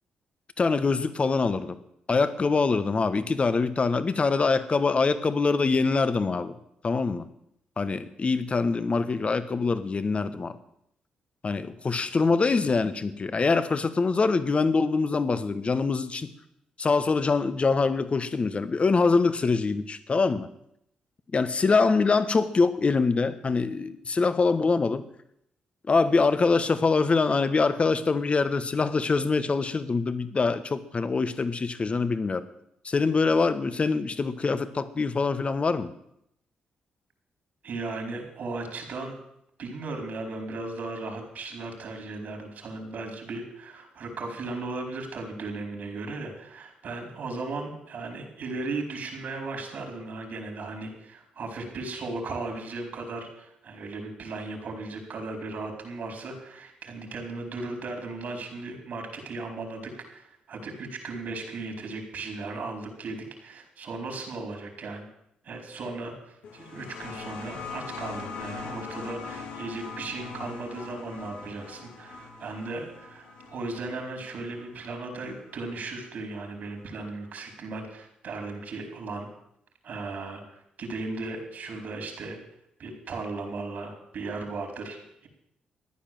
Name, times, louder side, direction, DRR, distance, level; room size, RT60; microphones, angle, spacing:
voice 1, 0.6-1.8 2.1-6.6 6.8-7.3 7.8-10.6 11.4-16.3 16.8-20.5 21.3-25.0 25.9-32.5 32.8-35.9, left 4 dB, 40° left, 12 dB, 1.4 m, -24 dB
voice 2, 37.6-39.2 39.6-65.1 65.4-66.1 66.5-79.3 79.8-80.4 80.8-82.4 82.8-85.3, right 3 dB, 65° right, 3 dB, 4.6 m, -36 dB
sound 1, 66.4-75.7 76.8-76.9, left 5 dB, 85° left, 2.7 m, -41 dB
14.5 x 10.0 x 7.7 m, 0.76 s
supercardioid pair, 55°, 3 cm